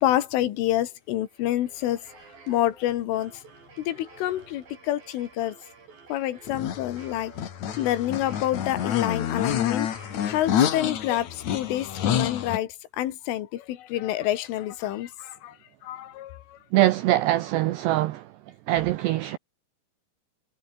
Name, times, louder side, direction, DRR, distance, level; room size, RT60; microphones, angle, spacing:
voice 1, 0.0-2.0 2.5-3.3 3.9-5.6 6.1-7.3 7.8-15.6 15.8-16.6, left 13 dB, 75° left, 4.0 m, -28 dB
sound 1, 1.1-11.5, right 5 dB, 45° right, 7.6 m, -51 dB
sound 2, 6.5-12.6, left 9 dB, 55° left, 2.1 m, -28 dB
voice 2, 16.7-18.3 18.7-19.4, right 15 dB, 90° right, 2.4 m, -23 dB
omnidirectional pair, 6.0 m